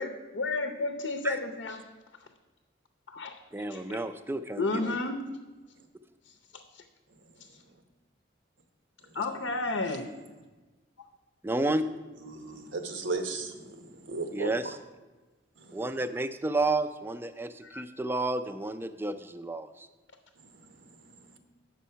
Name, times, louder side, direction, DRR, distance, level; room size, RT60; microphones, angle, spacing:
voice 1, 0.0-1.8 3.1-4.0 4.6-5.2 6.7-6.8 9.1-10.1 17.6-17.8, left 3 dB, 80° left, 6 dB, 0.7 m, -32 dB
voice 2, 3.5-5.0 11.4-11.9 14.3-14.8 15.7-19.9, right 2 dB, 10° right, 11 dB, 0.3 m, -31 dB
voice 3, 12.2-14.7 15.6-15.8, right 3 dB, 85° right, 7 dB, 1.0 m, -36 dB
8.2 x 6.2 x 5.6 m, 1.2 s
head